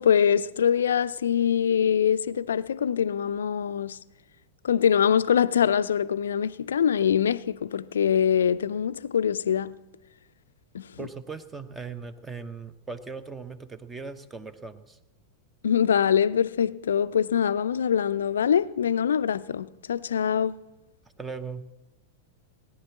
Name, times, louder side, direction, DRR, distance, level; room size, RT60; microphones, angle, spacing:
voice 1, 0.0-4.0 4.6-9.7 10.7-10.9 15.6-20.6, left 8 dB, 65° left, 0.4 m, -24 dB
voice 2, 11.0-15.0 21.2-21.6, right 4 dB, 15° right, 0.9 m, -39 dB
18.0 x 9.7 x 7.2 m
figure-of-eight pair, 90°, 0 cm